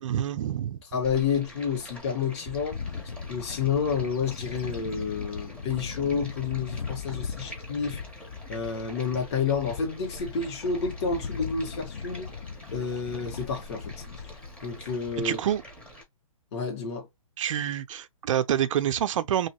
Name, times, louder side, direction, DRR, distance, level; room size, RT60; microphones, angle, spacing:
voice 1, 0.0-0.8 15.2-15.6 17.4-19.5, right 10 dB, 60° right, 0.5 m, -27 dB
voice 2, 0.9-2.8 3.3-8.0 8.5-12.3 12.7-14.0 14.6-15.4 16.5-17.1, left 6 dB, 50° left, 1.6 m, -29 dB
Stream, 1.0-16.0, equal, 5° left, 0.8 m, -46 dB
Bird / Wind, 2.7-15.5, left 6 dB, 80° left, 0.5 m, -39 dB
2.9 x 2.7 x 2.9 m
hypercardioid pair, 145°, 18 cm